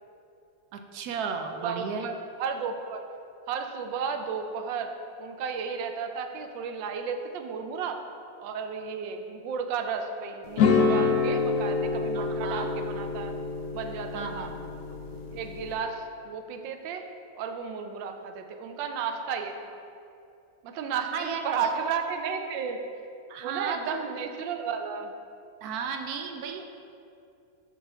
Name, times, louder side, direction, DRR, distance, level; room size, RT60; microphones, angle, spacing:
voice 1, 0.7-2.1 12.1-12.7 14.1-14.6 21.1-21.8 23.3-24.0 25.6-26.6, right 6 dB, 70° right, 5 dB, 0.9 m, -34 dB
voice 2, 1.5-2.1 2.4-3.0 3.5-4.9 5.2-8.0 8.4-13.3 13.7-14.5 15.3-17.0 17.3-19.8 20.6-22.8 23.4-25.1, right 6 dB, 90° right, 6 dB, 1.3 m, -33 dB
sound 1, 10.6-15.7, left 4 dB, 65° left, 1.0 m, -27 dB
7.4 x 6.6 x 3.4 m, 2.6 s
omnidirectional pair, 2.0 m